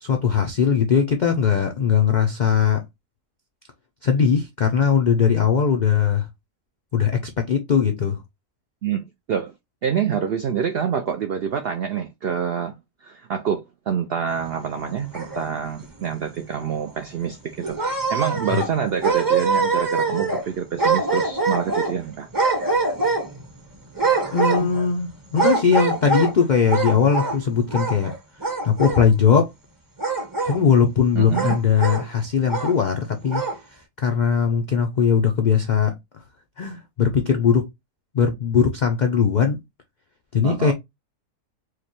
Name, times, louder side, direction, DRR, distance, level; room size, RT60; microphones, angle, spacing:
voice 1, 0.0-2.8 4.0-6.3 6.9-7.2 7.5-8.2 18.5-18.6 24.3-28.1 28.6-29.5 30.4-33.4 33.7-35.9 36.6-37.7 38.1-39.6 40.3-40.7, left 6 dB, 70° left, 0.4 m, -20 dB
voice 2, 8.8-9.5 9.8-12.7 13.0-17.8 18.1-22.3 31.1-31.6 40.4-40.7, right 7 dB, 75° right, 0.5 m, -26 dB
sound 1, 14.8-15.7 16.1-16.2 16.6-16.7 17.6-18.8 19.0-20.4 20.8-22.0 22.3-23.5 24.0-24.9 25.3-26.3 26.7-27.4 27.7-28.2 28.4-29.0 30.0-30.6 31.3-32.0 32.5-32.7 33.2-33.6, right 4 dB, 20° right, 0.6 m, -23 dB
4.8 x 2.1 x 2.9 m
omnidirectional pair, 1.6 m